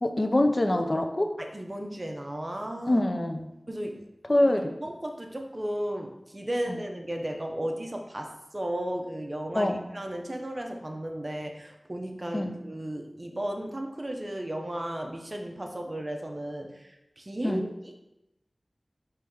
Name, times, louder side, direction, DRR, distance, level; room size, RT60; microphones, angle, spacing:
voice 1, 0.0-1.3 2.9-3.5 4.3-4.7 6.7-6.8 9.5-9.8 12.3-12.5 17.4-17.6, left 1 dB, 40° left, 5 dB, 0.4 m, -25 dB
voice 2, 1.4-3.0 3.7-4.1 4.8-18.0, right 1 dB, 35° right, 2 dB, 0.5 m, -34 dB
4.5 x 3.1 x 3.5 m, 0.93 s
wide cardioid pair, 55°, 0 cm